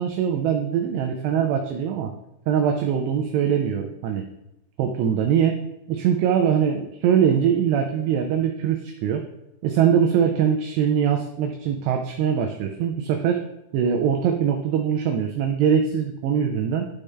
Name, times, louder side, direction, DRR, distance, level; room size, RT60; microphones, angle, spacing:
voice 1, 0.0-2.1 2.5-4.3 4.8-5.6 5.9-9.3 9.6-13.4 13.7-16.9, right 8 dB, 85° right, 4 dB, 2.4 m, -22 dB
12.0 x 5.0 x 3.3 m, 0.89 s
omnidirectional pair, 5.5 m